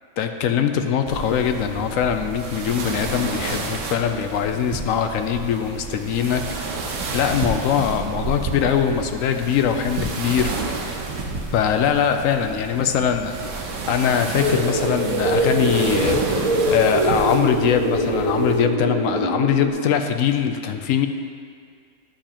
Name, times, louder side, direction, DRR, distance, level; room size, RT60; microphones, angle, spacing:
voice 1, 0.2-6.8 7.1-10.5 11.5-21.1, left 8 dB, 75° left, 7 dB, 1.0 m, -22 dB
sound 1, 1.1-18.6, right 4 dB, 85° right, 1.2 m, -30 dB
sound 2, 14.4-19.7, right 1 dB, 35° right, 0.6 m, -23 dB
11.5 x 6.8 x 2.9 m, 2.1 s
omnidirectional pair, 1.4 m